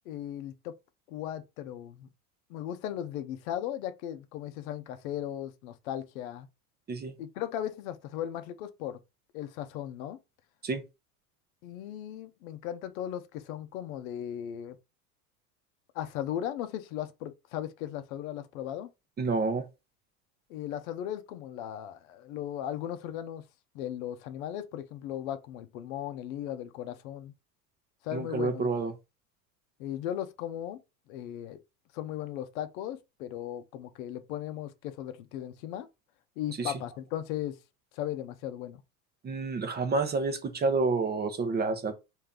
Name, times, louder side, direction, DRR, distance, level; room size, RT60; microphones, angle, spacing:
voice 1, 0.1-0.8 1.1-2.1 2.5-6.5 7.2-9.0 9.3-10.2 11.6-14.8 15.9-18.9 20.5-23.4 23.7-27.3 28.0-28.7 29.8-30.8 31.1-31.6 31.9-35.9 36.4-37.6 37.9-38.8, left 11 dB, 65° left, 0.7 m, -37 dB
voice 2, 19.2-19.7 28.1-28.9 36.6-36.7 39.2-41.9, right 4 dB, 20° right, 0.7 m, -29 dB
3.3 x 2.8 x 3.7 m
hypercardioid pair, 90°, 44 cm